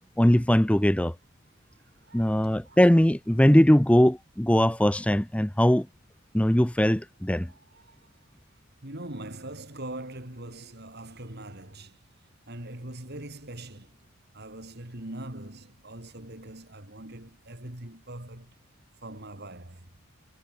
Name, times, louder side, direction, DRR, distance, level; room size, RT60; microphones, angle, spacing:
voice 1, 0.2-1.1 2.1-5.9 6.3-7.5, equal, 5° left, 0.6 m, -20 dB
voice 2, 1.8-2.8 7.5-8.1 8.8-12.0 12.5-14.0 14.3-18.5 19.0-19.9, right 1 dB, 45° right, 3.3 m, -42 dB
head